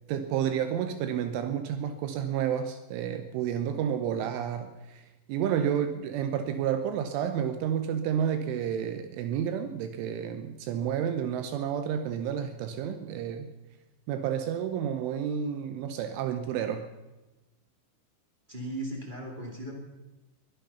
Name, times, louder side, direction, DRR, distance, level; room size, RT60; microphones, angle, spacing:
voice 1, 0.1-5.0 5.3-13.5 14.1-16.9, right 9 dB, 80° right, 9 dB, 3.2 m, -30 dB
voice 2, 18.5-19.7, right 1 dB, 25° right, 0 dB, 1.0 m, -37 dB
22.0 x 10.5 x 5.7 m, 1.1 s
omnidirectional pair, 5.8 m